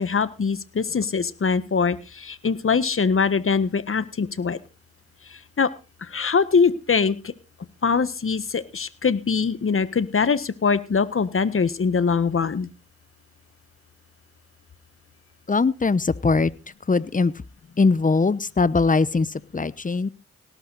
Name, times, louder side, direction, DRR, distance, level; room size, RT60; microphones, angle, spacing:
voice 1, 0.0-4.6 5.3-5.7 6.0-7.3 7.8-12.7, left 5 dB, 45° left, 15 dB, 1.5 m, -23 dB
voice 2, 15.5-16.5 16.9-17.3 17.8-20.1, left 4 dB, 25° left, 18 dB, 1.0 m, -21 dB
18.0 x 11.0 x 4.2 m, 0.33 s
supercardioid pair, 45°, 29 cm